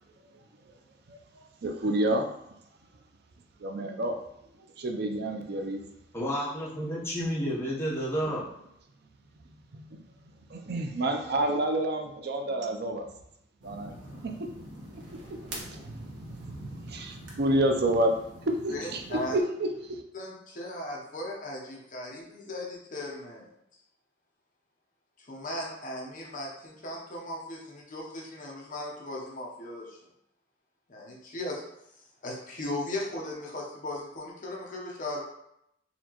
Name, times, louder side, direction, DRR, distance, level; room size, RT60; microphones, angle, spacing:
voice 1, 1.1-2.3 3.6-4.1 4.8-5.8 9.7-10.0 10.5-13.1 13.6-14.3 15.3-15.9 16.5-16.6 16.8-18.1 18.5-19.0 19.3-20.0, right 1 dB, 60° right, 4 dB, 0.5 m, -29 dB
voice 2, 6.1-8.5, equal, 15° left, -6 dB, 0.9 m, -30 dB
sound 1, 13.6-19.4, right 1 dB, 85° right, 1.2 m, -44 dB
voice 3, 18.7-19.4 20.1-23.5 25.2-30.0 30.9-31.6 32.2-35.2, left 1 dB, 45° left, -3 dB, 0.8 m, -37 dB
4.1 x 2.9 x 2.9 m, 0.79 s
head